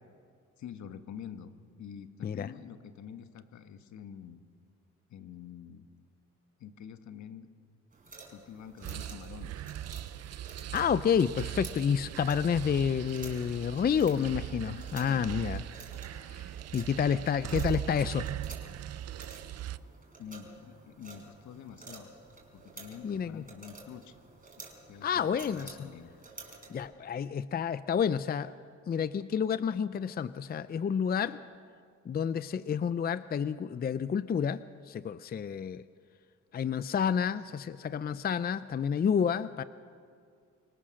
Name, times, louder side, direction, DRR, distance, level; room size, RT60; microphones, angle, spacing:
voice 1, 0.6-4.4 5.1-5.9 6.6-7.5 8.3-9.7 14.0-14.4 14.8-15.7 20.2-22.1 22.5-24.2 24.9-26.1, left 8 dB, 70° left, 9 dB, 1.3 m, -47 dB
sound 1, 7.9-26.9, right 3 dB, 25° right, 5.1 m, -52 dB
sound 2, 8.8-19.8, right 11 dB, 55° right, 0.6 m, -40 dB
voice 2, 10.7-15.6 16.3-16.4 16.7-18.3 23.0-23.4 25.0-25.8 26.7-28.5 28.9-31.4 32.1-34.6 34.9-35.8 36.5-39.6, left 7 dB, 30° left, 15 dB, 0.5 m, -29 dB
26.5 x 18.0 x 6.3 m, 2.2 s
cardioid pair, 90°, 30 cm